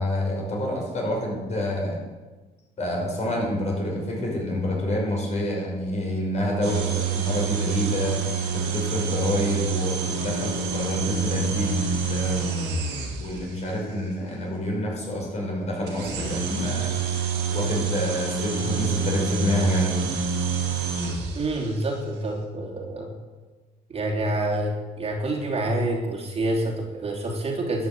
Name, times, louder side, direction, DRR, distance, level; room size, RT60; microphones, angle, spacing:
voice 1, 0.0-2.0 2.8-8.2 8.5-12.4 13.2-16.9 17.5-20.2, left 1 dB, 40° left, -1 dB, 5.6 m, -27 dB
sound 1, 6.6-13.5 15.9-21.7, right 6 dB, 85° right, 3.1 m, -27 dB
voice 2, 21.3-23.1 23.9-27.9, right 1 dB, 35° right, -1 dB, 3.0 m, -27 dB
11.5 x 9.1 x 7.9 m, 1.3 s
cardioid pair, 110°, 17 cm